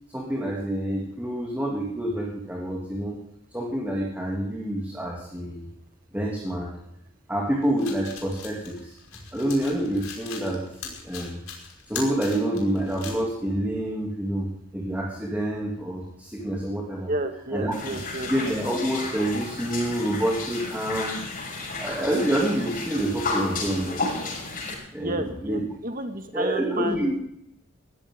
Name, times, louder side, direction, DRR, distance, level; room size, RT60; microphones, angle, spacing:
voice 1, 0.1-3.2 3.5-5.6 6.1-6.7 7.3-9.0 9.3-11.4 11.9-14.5 14.7-17.1 17.5-18.0 18.3-21.2 21.8-24.3 24.9-25.7 26.3-27.2, right 1 dB, 10° right, -2 dB, 2.8 m, -27 dB
sound 1, 7.6-13.2, left 6 dB, 85° left, 5.3 m, -40 dB
voice 2, 17.1-18.3 25.0-27.1, right 2 dB, 40° right, 6 dB, 1.9 m, -31 dB
sound 2, 17.7-24.7, left 3 dB, 40° left, 6.3 m, -33 dB
20.5 x 15.0 x 3.8 m, 0.75 s
head